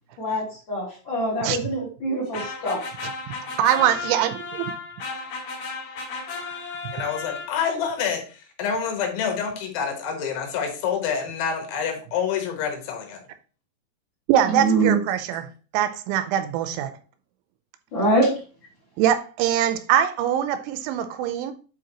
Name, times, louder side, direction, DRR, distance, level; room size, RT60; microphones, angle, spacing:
voice 1, 0.2-2.8 14.4-15.0 17.9-18.3, right 2 dB, 30° left, 2.8 m, -24 dB
sound 1, 2.3-7.9, left 4 dB, 55° left, 3.7 m, -34 dB
voice 2, 3.4-4.7 14.3-15.5 15.7-16.9 19.0-21.5, right 10 dB, 85° right, 3.0 m, -23 dB
voice 3, 6.9-13.2, left 7 dB, 80° left, 3.6 m, -27 dB
9.2 x 4.5 x 2.9 m
omnidirectional pair, 5.5 m